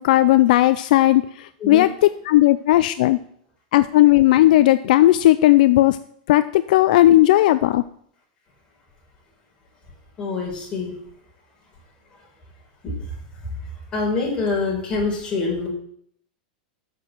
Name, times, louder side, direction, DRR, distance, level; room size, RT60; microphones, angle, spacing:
voice 1, 0.0-1.9 2.2-3.2 3.7-6.0 6.3-7.8, left 15 dB, 60° left, 12 dB, 0.4 m, -15 dB
voice 2, 10.2-10.9 12.8-13.0 13.9-15.7, left 3 dB, 20° left, -3 dB, 4.2 m, -25 dB
7.4 x 6.3 x 7.9 m, 0.64 s
supercardioid pair, 160°, 5 cm